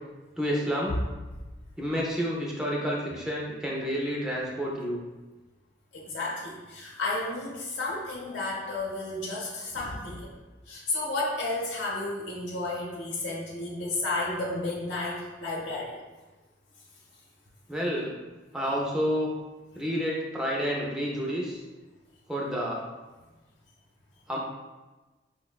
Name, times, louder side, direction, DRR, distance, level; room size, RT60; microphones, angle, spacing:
voice 1, 0.4-1.0 1.8-5.0 17.7-18.1 18.5-19.3 19.8-21.6 22.3-22.8 24.3-24.4, equal, 5° right, -4 dB, 0.4 m, -29 dB
voice 2, 5.9-10.3 10.7-16.0, left 2 dB, 85° left, -5 dB, 0.7 m, -32 dB
5.1 x 2.1 x 2.2 m, 1.2 s
head